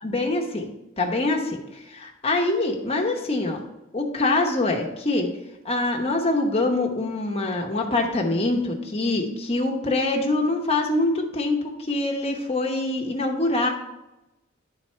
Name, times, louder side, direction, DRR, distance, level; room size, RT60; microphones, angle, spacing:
voice 1, 0.0-0.7 1.0-3.6 3.9-5.3 5.6-13.7, left 2 dB, 30° left, 2 dB, 0.9 m, -24 dB
10.0 x 4.1 x 4.3 m, 0.96 s
head